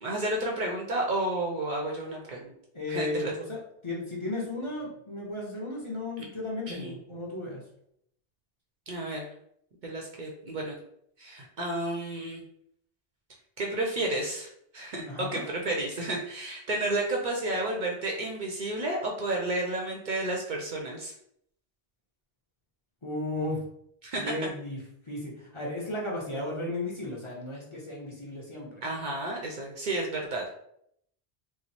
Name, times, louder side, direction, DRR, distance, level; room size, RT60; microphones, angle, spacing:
voice 1, 0.0-2.5 2.9-3.3 6.7-7.0 8.9-9.3 9.8-10.7 11.2-12.4 13.6-14.5 14.7-21.1 24.0-24.3 28.8-30.4, right 2 dB, 55° right, -1 dB, 0.6 m, -31 dB
voice 2, 2.7-7.6 15.0-15.4 23.0-23.6 24.2-24.8 25.0-28.8, left 2 dB, 30° left, -5 dB, 0.9 m, -35 dB
3.0 x 2.0 x 4.0 m, 0.71 s
omnidirectional pair, 1.1 m